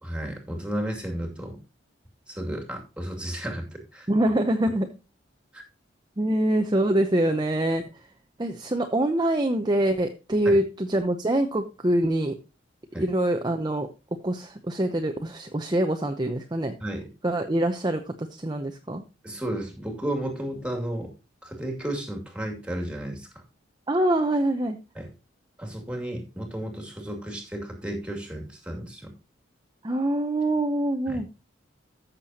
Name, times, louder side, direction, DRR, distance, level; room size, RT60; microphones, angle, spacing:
voice 1, 0.0-1.6 2.3-3.6 3.9-4.1 5.5-5.6 10.4-10.6 12.9-13.1 16.8-17.1 19.2-21.1 21.4-23.4 24.9-25.1 25.6-29.1 31.1-31.2, right 1 dB, 5° right, 2 dB, 2.4 m, -33 dB
voice 2, 4.1-4.9 6.2-7.9 8.4-12.3 13.0-13.9 14.2-16.7 17.2-19.0 23.9-24.8 29.8-31.3, right 1 dB, 20° right, 5 dB, 0.7 m, -24 dB
14.5 x 6.8 x 2.8 m, 0.29 s
head